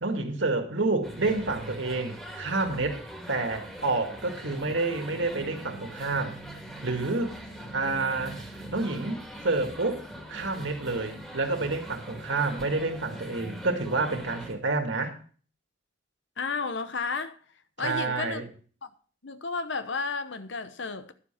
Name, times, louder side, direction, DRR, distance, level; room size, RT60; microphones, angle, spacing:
voice 1, 0.0-3.0 3.3-6.4 6.8-7.4 7.7-15.2 17.8-18.5, right 3 dB, 80° right, 2.1 m, -29 dB
sound 1, 1.0-14.5, right 1 dB, 5° left, 2.1 m, -42 dB
voice 2, 16.4-17.4 17.8-18.4 19.2-21.1, left 4 dB, 70° left, 1.0 m, -32 dB
11.5 x 7.3 x 5.8 m
head